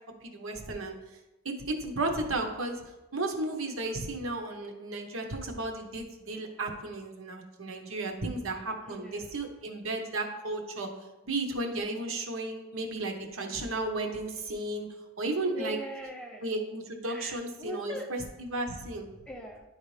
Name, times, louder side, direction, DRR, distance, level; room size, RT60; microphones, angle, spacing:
voice 1, 0.2-1.0 1.4-2.8 3.1-10.9 11.2-14.9 15.2-15.8 16.4-19.1, right 2 dB, 65° right, 3 dB, 0.9 m, -34 dB
voice 2, 8.9-9.3 15.5-16.4 17.1-18.1 19.3-19.6, equal, 5° left, 1 dB, 0.5 m, -41 dB
10.5 x 4.0 x 3.2 m, 1.0 s
head